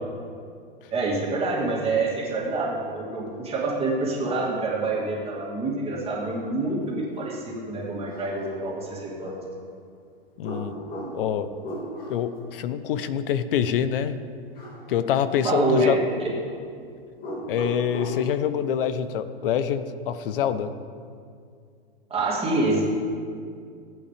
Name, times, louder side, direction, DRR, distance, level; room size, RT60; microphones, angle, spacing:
voice 1, 0.9-9.3 15.4-16.0 22.1-22.8, right 2 dB, 20° right, -4 dB, 2.6 m, -26 dB
sound 1, 7.4-7.5 8.0-9.4 10.4-12.4 14.5-15.0 15.2-16.4 17.1-18.3, equal, 30° left, 2.2 m, -37 dB
voice 2, 10.4-10.7 11.1-11.5 12.1-14.2 14.9-16.0 17.5-20.7, left 9 dB, 65° left, 12 dB, 0.8 m, -25 dB
15.5 x 8.6 x 3.4 m, 2.3 s
hypercardioid pair, 125°, 30 cm